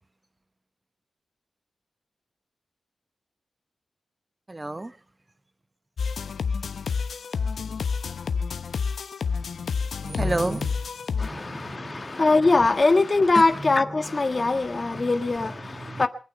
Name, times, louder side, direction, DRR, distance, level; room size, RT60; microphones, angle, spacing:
voice 1, 4.5-5.0 9.6-10.8 11.1-12.2 13.3-13.7 14.3-14.5 14.9-15.1 15.8-16.1, right 2 dB, 20° right, 1.0 m, -32 dB
sound 1, 6.0-11.3, left 5 dB, 85° left, 1.0 m, -29 dB
voice 2, 11.2-16.1, left 3 dB, 30° left, 1.6 m, -22 dB
24.0 x 9.2 x 6.6 m
wide cardioid pair, 145°, 0 cm